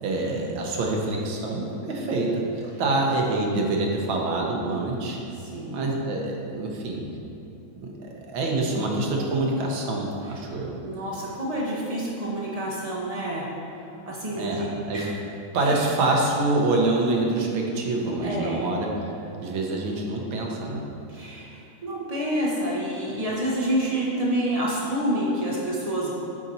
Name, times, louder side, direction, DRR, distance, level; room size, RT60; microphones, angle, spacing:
voice 1, 0.0-5.2 5.7-7.0 7.8-10.7 14.3-15.2 15.5-18.9 19.4-20.9, right 2 dB, 85° right, -1 dB, 1.7 m, -26 dB
voice 2, 5.5-5.8 10.8-13.4 14.1-14.7 14.9-15.1 15.6-15.8 18.2-18.6 21.1-26.1, right 1 dB, 65° right, -6 dB, 0.3 m, -28 dB
8.1 x 4.0 x 4.2 m, 2.8 s
omnidirectional pair, 2.1 m